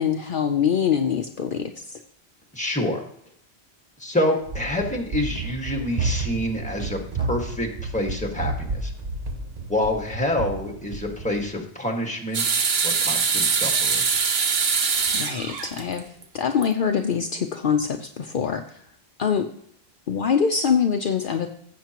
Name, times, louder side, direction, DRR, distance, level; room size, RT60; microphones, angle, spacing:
voice 1, 0.0-2.0 15.1-16.0 16.3-18.6 19.2-19.5 20.1-21.5, left 7 dB, 60° left, 5 dB, 0.8 m, -24 dB
voice 2, 2.5-3.0 4.0-8.9 9.7-14.1, left 1 dB, 5° left, 2 dB, 1.7 m, -27 dB
Run, 4.4-11.5, right 3 dB, 45° right, 0.8 m, -31 dB
sound 1, 12.3-16.2 16.6-16.7 17.8-17.9, right 5 dB, 75° right, 1.2 m, -23 dB
16.0 x 7.5 x 2.9 m, 0.69 s
omnidirectional pair, 1.0 m